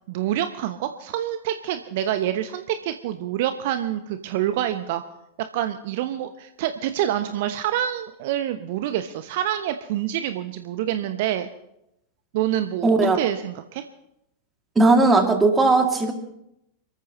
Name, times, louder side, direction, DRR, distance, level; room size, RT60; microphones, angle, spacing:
voice 1, 0.1-5.0 5.4-11.5 12.3-13.9, right 11 dB, 50° right, 9 dB, 0.9 m, -27 dB
voice 2, 12.8-13.2 14.8-16.1, right 3 dB, 15° right, 3 dB, 2.6 m, -17 dB
27.5 x 14.0 x 3.1 m, 0.82 s
figure-of-eight pair, 90°, 0 cm